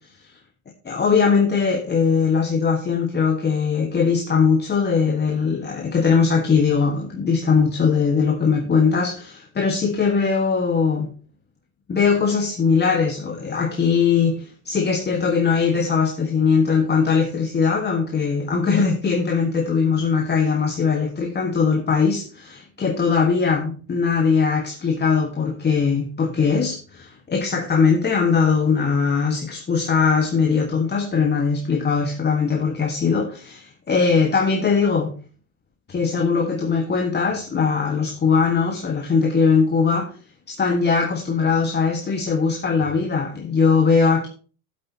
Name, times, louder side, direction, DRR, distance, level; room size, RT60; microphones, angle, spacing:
voice 1, 0.8-11.1 11.9-35.1 35.9-40.1 40.5-44.3, left 5 dB, 25° left, 2 dB, 1.5 m, -20 dB
11.5 x 8.3 x 2.8 m, 0.36 s
hypercardioid pair, 95°, 44 cm